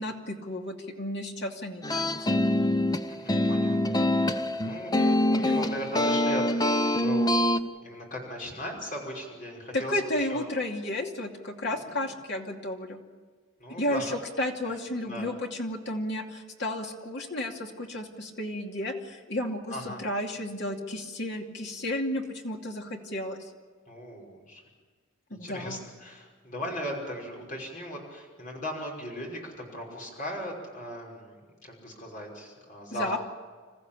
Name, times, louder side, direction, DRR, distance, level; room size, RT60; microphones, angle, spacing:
voice 1, 0.0-2.1 9.7-13.0 13.8-14.0 14.4-23.5 25.3-25.8 32.9-33.2, left 1 dB, 55° left, 1 dB, 2.6 m, -32 dB
sound 1, 1.8-7.6, left 1 dB, 20° left, 0.7 m, -25 dB
voice 2, 3.1-7.5 7.8-10.5 11.8-12.1 13.6-14.2 14.6-14.8 15.0-15.3 19.7-20.0 23.9-24.6 25.3-33.2, equal, 40° left, -1 dB, 5.6 m, -38 dB
27.5 x 14.5 x 8.6 m, 1.5 s
head